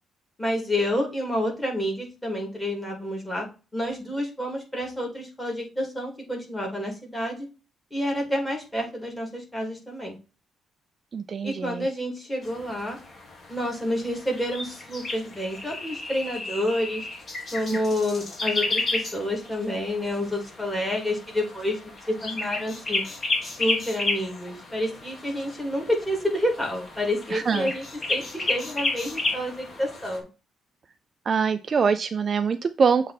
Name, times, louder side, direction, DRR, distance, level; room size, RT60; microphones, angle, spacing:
voice 1, 0.4-3.5 3.7-7.5 7.9-10.2 11.4-13.0 13.5-17.0 17.5-21.8 22.1-23.0 23.4-27.8 28.1-30.3, left 1 dB, 10° left, 0 dB, 2.6 m, -29 dB
voice 2, 11.1-11.9 27.3-27.7 31.3-33.1, right 5 dB, 35° right, 10 dB, 0.4 m, -24 dB
sound 1, 12.4-30.2, left 2 dB, 30° left, 1.8 m, -33 dB
7.4 x 3.2 x 4.1 m, 0.31 s
cardioid pair, 135°, 0 cm